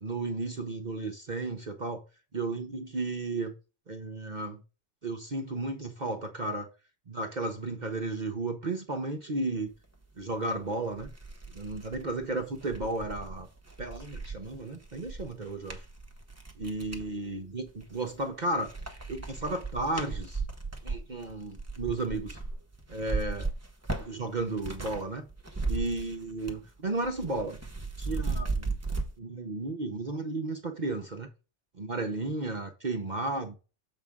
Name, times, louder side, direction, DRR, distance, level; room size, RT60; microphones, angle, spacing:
voice 1, 0.0-2.0 2.3-3.5 3.9-4.6 5.0-6.7 7.1-9.7 10.2-11.1 11.5-13.5 13.8-15.8 16.6-20.4 20.8-22.4 22.9-23.5 24.0-25.3 25.7-27.6 28.0-28.7 29.2-31.3 31.7-33.5, right 2 dB, 45° right, 0.9 m, -34 dB
sound 1, 10.4-10.5 10.9-17.1 17.7-18.3 18.6-25.0 25.3-26.7 27.0-29.1, right 3 dB, 15° right, 1.0 m, -36 dB
7.4 x 5.1 x 3.6 m
omnidirectional pair, 1.3 m